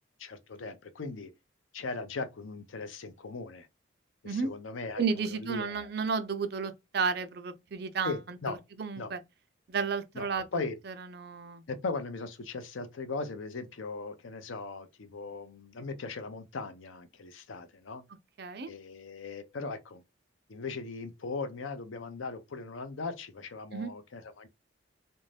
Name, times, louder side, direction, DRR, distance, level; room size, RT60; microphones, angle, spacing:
voice 1, 0.2-1.3 1.7-3.7 4.2-5.9 8.0-8.6 9.0-9.1 10.1-10.7 11.7-18.0 18.7-20.0 20.5-24.5, left 3 dB, 85° left, 0.6 m, -39 dB
voice 2, 5.0-9.2 9.7-11.6 18.4-18.7 23.7-23.9, right 5 dB, 55° right, 0.5 m, -33 dB
2.6 x 2.1 x 3.2 m
head